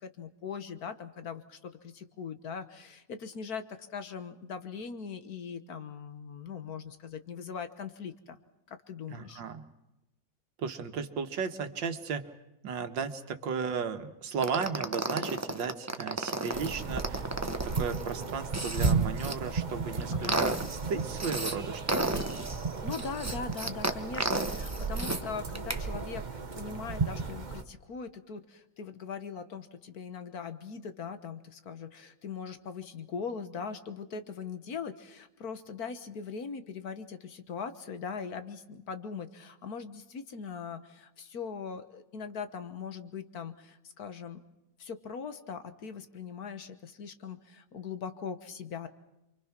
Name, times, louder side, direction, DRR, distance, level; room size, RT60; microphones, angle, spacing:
voice 1, 0.0-8.4 8.7-9.4 20.1-20.4 22.8-44.4 44.8-48.9, left 6 dB, 55° left, 10 dB, 1.7 m, -40 dB
voice 2, 9.1-9.6 10.6-12.3 12.6-17.2 17.6-22.1, right 5 dB, 90° right, 7 dB, 2.1 m, -35 dB
sound 1, 14.4-19.3 19.8-21.5 21.9-25.2 25.5-25.8, right 2 dB, 15° right, 0.7 m, -33 dB
sound 2, 16.5-27.6, right 4 dB, 30° right, 1.0 m, -34 dB
28.5 x 24.0 x 6.0 m, 0.93 s
omnidirectional pair, 2.0 m